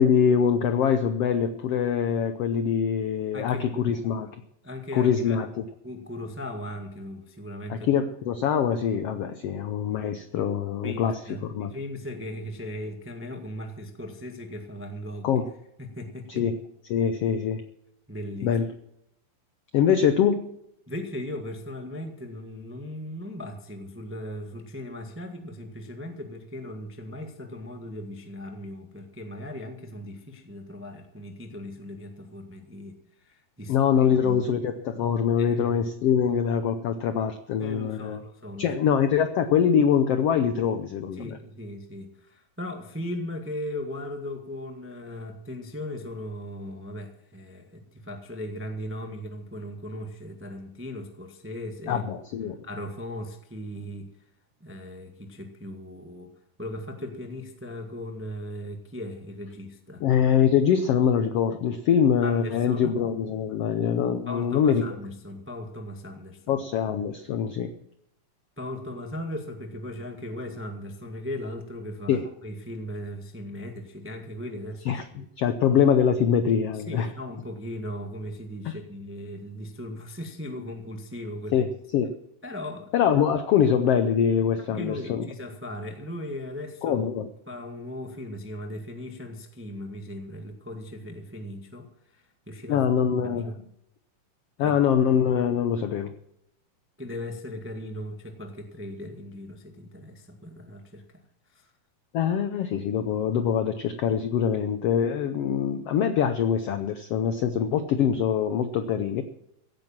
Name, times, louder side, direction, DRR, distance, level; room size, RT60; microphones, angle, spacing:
voice 1, 0.0-4.3 4.9-5.6 7.7-11.7 15.2-15.5 16.3-16.6 16.9-17.7 18.4-18.7 19.7-20.5 33.7-38.2 38.6-41.3 51.9-52.6 60.0-65.0 66.5-67.7 72.1-72.3 74.9-77.1 78.6-78.7 81.5-82.2 82.9-85.3 86.8-87.3 92.7-93.5 94.6-96.1 102.1-109.2, left 8 dB, 90° left, 10 dB, 1.3 m, -24 dB
voice 2, 3.3-3.8 4.6-5.5 5.8-7.9 10.8-15.4 15.8-16.4 18.1-18.6 20.9-34.4 35.4-35.8 37.6-38.7 41.1-52.0 52.6-54.1 54.6-56.3 56.6-60.1 62.2-62.9 64.3-66.6 68.6-75.0 76.7-81.7 82.4-82.9 84.7-87.0 87.5-92.8 93.2-93.6 94.6-94.7 97.0-101.2 101.5-101.7, left 1 dB, 20° right, 4 dB, 0.3 m, -38 dB
16.0 x 9.2 x 7.3 m, 0.78 s
omnidirectional pair, 3.8 m